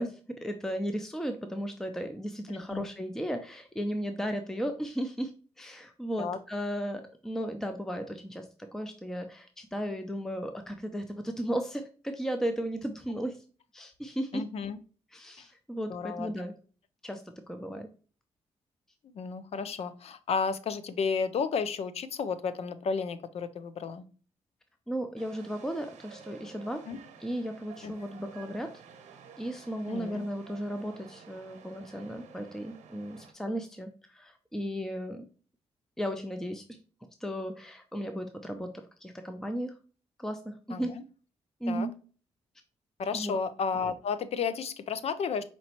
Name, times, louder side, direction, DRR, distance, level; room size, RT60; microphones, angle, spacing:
voice 1, 0.0-5.3 5.6-8.5 8.7-13.4 13.7-14.4 15.1-16.5 17.0-17.9 24.9-26.8 27.2-28.7 29.4-35.2 36.0-36.6 37.2-39.7 40.2-40.9 41.6-41.9 43.1-43.4, equal, 5° left, 6 dB, 0.5 m, -35 dB
voice 2, 2.5-2.8 6.2-6.4 14.3-14.8 15.9-16.3 19.0-24.1 26.9-27.0 27.8-27.9 29.9-30.2 40.7-41.0 41.7-41.9 43.0-45.4, left 5 dB, 60° left, 13 dB, 0.5 m, -32 dB
sound 1, 25.2-33.3, right 6 dB, 85° right, 0.8 m, -52 dB
5.2 x 3.0 x 2.9 m, 0.39 s
cardioid pair, 70°, 12 cm